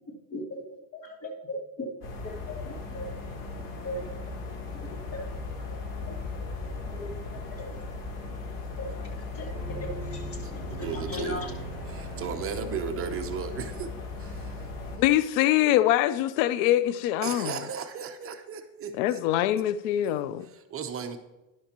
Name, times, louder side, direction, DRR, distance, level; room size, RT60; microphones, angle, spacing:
voice 1, 0.9-1.9 2.5-3.0 3.8-4.1 4.7-5.2 6.9-7.1 7.6-7.9 8.8-11.5 12.6-12.7, left 1 dB, 35° left, 0 dB, 2.8 m, -38 dB
sound 1, 2.0-15.0, left 3 dB, 55° left, 3.1 m, -37 dB
sound 2, 9.5-13.3, right 3 dB, 5° right, 3.1 m, -42 dB
voice 2, 10.4-11.4 11.9-13.9 14.2-14.5 17.2-19.2 20.1-20.2 20.5-21.2, right 7 dB, 35° right, 6 dB, 0.9 m, -35 dB
voice 3, 14.9-17.6 19.0-20.5, left 13 dB, 90° left, 14 dB, 0.6 m, -24 dB
12.5 x 11.0 x 3.0 m, 1.0 s
cardioid pair, 135°, 39 cm